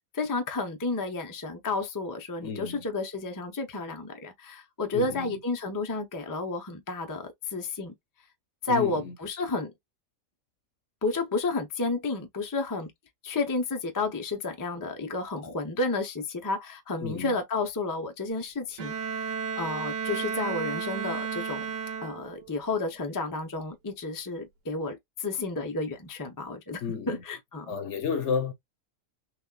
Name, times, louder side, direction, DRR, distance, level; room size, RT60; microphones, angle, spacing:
voice 1, 0.1-7.9 8.6-9.7 11.0-12.9 13.2-21.7 22.0-27.8, left 3 dB, 20° left, 0.5 m, -31 dB
voice 2, 2.4-2.8 4.9-5.4 8.7-9.1 17.0-17.4 26.8-27.2 27.7-28.5, left 6 dB, 60° left, 1.1 m, -32 dB
Bowed string instrument, 18.8-22.6, right 6 dB, 75° right, 1.2 m, -33 dB
6.1 x 2.4 x 2.2 m
omnidirectional pair, 1.4 m